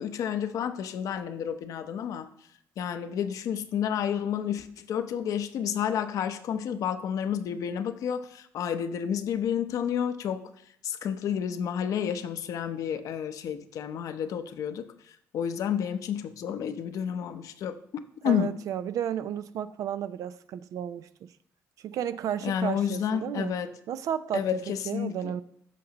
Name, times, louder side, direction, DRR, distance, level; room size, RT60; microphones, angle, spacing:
voice 1, 0.0-2.3 2.8-10.4 10.8-17.8 18.2-18.5 22.4-23.7 24.3-25.3, left 8 dB, 70° left, 0.7 m, -30 dB
voice 2, 18.2-21.3 21.8-23.5 23.9-24.5 24.9-25.4, right 10 dB, 70° right, 0.5 m, -32 dB
14.5 x 5.2 x 2.9 m
cardioid pair, 80°, 6 cm